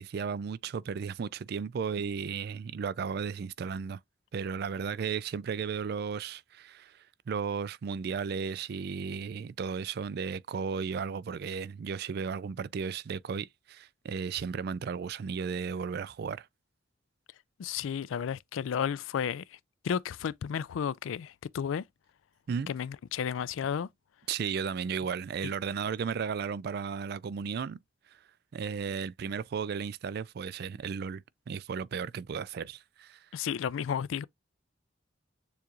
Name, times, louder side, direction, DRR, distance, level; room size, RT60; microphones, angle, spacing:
voice 1, 0.0-4.0 4.3-7.0 7.3-16.5 22.5-22.7 24.3-27.8 28.5-33.2, right 6 dB, 55° right, 0.3 m, -34 dB
voice 2, 17.6-19.6 19.8-21.9 22.7-23.9 33.3-34.2, left 8 dB, 85° left, 0.3 m, -32 dB
6.9 x 2.4 x 3.0 m
head